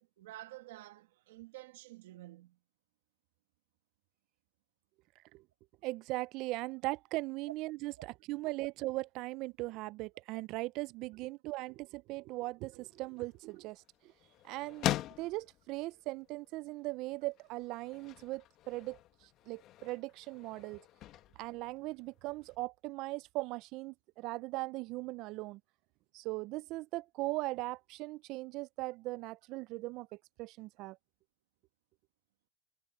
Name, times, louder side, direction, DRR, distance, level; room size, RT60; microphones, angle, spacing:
voice 1, 0.0-2.6, right 16 dB, 85° right, 1.9 m, -50 dB
voice 2, 5.8-14.1 14.4-14.9 15.2-19.0 19.5-20.9 21.4-25.6 26.1-31.0, right 21 dB, 55° right, 0.4 m, -39 dB
sound 1, 12.8-22.6, left 14 dB, 45° left, 1.1 m, -43 dB
supercardioid pair, 130°, 0 cm